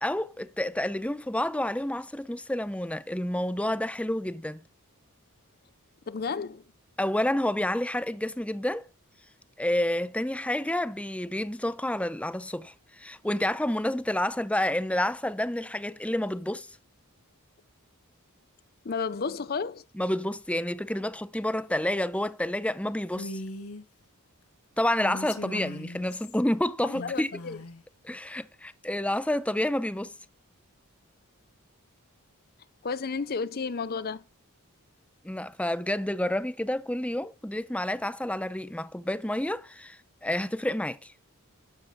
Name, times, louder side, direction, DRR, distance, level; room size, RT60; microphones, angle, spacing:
voice 1, 0.0-4.6 7.0-8.9 9.6-16.7 20.0-23.4 24.8-27.3 28.0-30.1 35.2-41.1, left 1 dB, 5° left, 0.7 m, -29 dB
voice 2, 6.1-6.6 18.8-19.8 25.5-25.6 26.8-27.6 32.8-34.2, left 5 dB, 45° left, 0.6 m, -32 dB
Female speech woman speaking, 23.1-23.8 24.9-26.4 26.9-27.8, left 1 dB, 75° left, 2.3 m, -40 dB
13.0 x 12.5 x 3.6 m
head